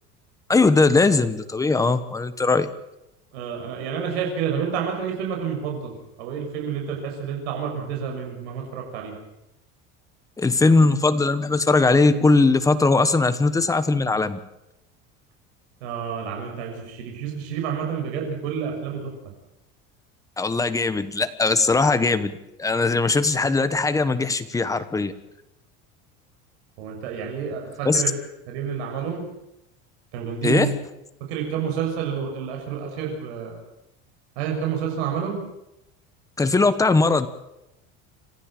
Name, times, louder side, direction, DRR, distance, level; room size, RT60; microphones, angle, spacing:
voice 1, 0.5-2.7 10.4-14.4 20.4-22.3 22.6-25.1 27.8-28.0 30.4-30.7 36.4-37.3, left 3 dB, 10° left, 11 dB, 1.2 m, -20 dB
voice 2, 3.3-9.1 15.8-19.1 26.8-28.1 28.5-29.2 30.1-30.7 31.3-33.6 34.3-35.4, right 7 dB, 85° right, 1 dB, 6.7 m, -29 dB
27.0 x 15.0 x 7.7 m, 0.88 s
cardioid pair, 150°, 32 cm